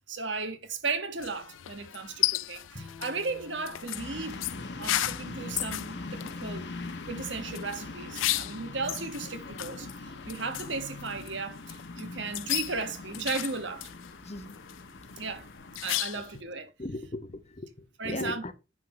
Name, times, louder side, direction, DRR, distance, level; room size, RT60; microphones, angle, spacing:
voice 1, 0.1-4.4 4.8-6.7 7.1-13.9 15.2-15.5 15.8-16.7 18.0-18.5, right 4 dB, 65° right, 1.4 m, -35 dB
sound 1, 1.2-16.4, left 15 dB, 85° left, 0.4 m, -36 dB
Bowed string instrument, 2.7-6.0, left 3 dB, 45° right, 4.4 m, -52 dB
sound 2, 3.9-16.0, left 3 dB, 60° left, 1.2 m, -42 dB
voice 2, 14.2-14.6 16.1-16.3 16.8-18.5, left 2 dB, 35° left, 0.9 m, -38 dB
9.7 x 3.8 x 6.4 m
head